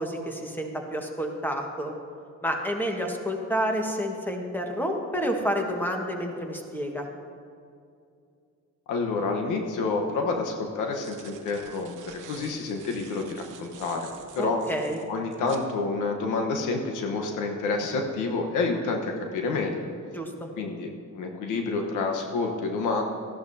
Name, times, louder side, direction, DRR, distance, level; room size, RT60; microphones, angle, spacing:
voice 1, 0.0-1.9 2.4-7.1 14.4-15.0 20.1-20.5, equal, 5° left, 2 dB, 1.5 m, -29 dB
voice 2, 8.9-14.6 15.1-19.9 20.6-23.0, left 3 dB, 90° left, 2 dB, 1.1 m, -29 dB
sound 1, 9.6-9.7 10.7-15.7, right 8 dB, 90° right, 1.0 m, -49 dB
14.5 x 11.5 x 2.8 m, 2.4 s
cardioid pair, 90°, 30 cm